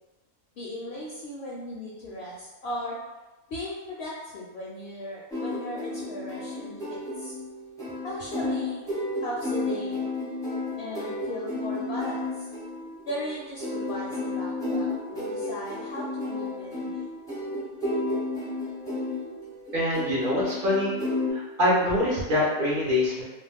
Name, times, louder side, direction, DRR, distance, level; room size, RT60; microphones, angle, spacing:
voice 1, 0.6-3.0 3.5-7.3 8.0-8.8 9.2-10.0 10.8-12.5 13.0-17.1, left 1 dB, 65° left, -5 dB, 0.7 m, -37 dB
sound 1, 5.3-21.3, left 2 dB, 5° left, 0.5 m, -32 dB
voice 2, 19.7-20.9 21.3-23.2, left 1 dB, 55° right, -6 dB, 0.6 m, -24 dB
2.4 x 2.0 x 3.4 m, 1.1 s
omnidirectional pair, 1.4 m